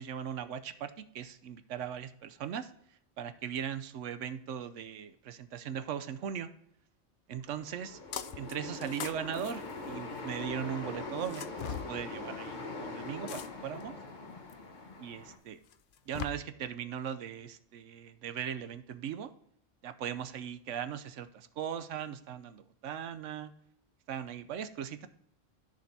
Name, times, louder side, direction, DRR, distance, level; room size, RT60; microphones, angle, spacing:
voice 1, 0.0-2.7 3.2-6.5 7.3-8.0 8.4-14.0 15.0-15.6 16.1-19.3 19.8-23.5 24.1-25.1, right 8 dB, 75° right, 11 dB, 1.0 m, -39 dB
sound 1, 7.5-15.4, left 2 dB, 40° left, 1.2 m, -42 dB
sound 2, 8.1-8.5 8.8-10.4 11.2-11.9 13.3-13.8 14.5-14.6 15.7-16.3, left 9 dB, 60° left, 0.6 m, -40 dB
14.0 x 5.1 x 2.7 m, 0.71 s
omnidirectional pair, 1.3 m